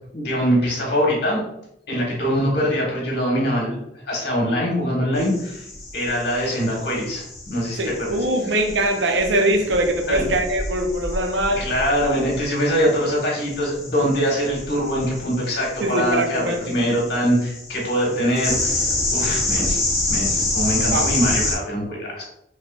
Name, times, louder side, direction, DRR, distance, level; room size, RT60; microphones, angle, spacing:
voice 1, 0.1-1.4 1.9-5.6 5.9-8.2 10.1-10.3 11.6-22.2, equal, 65° left, -2 dB, 1.2 m, -23 dB
sound 1, 5.2-21.6, left 2 dB, 15° left, 0.7 m, -28 dB
voice 2, 7.8-11.7 15.8-16.8 20.9-21.1, right 1 dB, 75° right, 4 dB, 0.6 m, -22 dB
3.5 x 3.1 x 2.4 m, 0.78 s
head